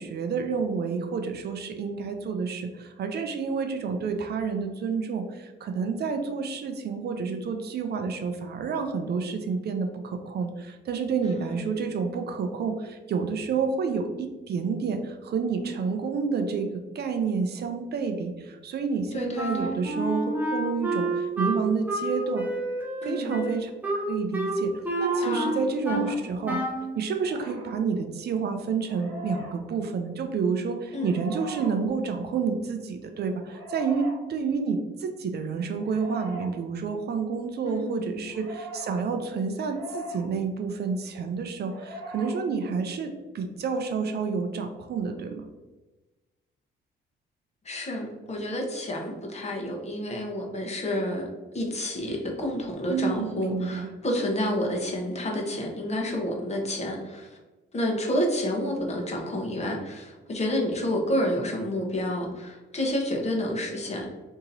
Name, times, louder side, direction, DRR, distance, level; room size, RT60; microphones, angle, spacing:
voice 1, 0.0-22.5 23.0-24.7 25.0-26.6 27.0-45.5 52.9-53.9, right 5 dB, 55° right, 6 dB, 0.5 m, -29 dB
voice 2, 11.2-11.7 19.1-19.7 23.0-23.4 25.2-25.6 25.9-26.1 30.9-31.2 37.6-38.3 47.6-51.3 51.5-57.4 57.7-64.1, left 1 dB, 35° left, 0 dB, 0.9 m, -30 dB
Wind instrument woodwind instrument, 19.3-26.1 26.4-26.9, right 2 dB, 10° right, 0.8 m, -29 dB
sound 1, 24.9-25.5 27.1-27.7 28.8-29.6 30.9-31.7 33.4-34.2 35.7-36.5 38.3-38.9 39.6-40.2 41.6-42.3, equal, 75° right, 0.8 m, -40 dB
2.9 x 2.7 x 3.9 m, 1.2 s
cardioid pair, 90°, 20 cm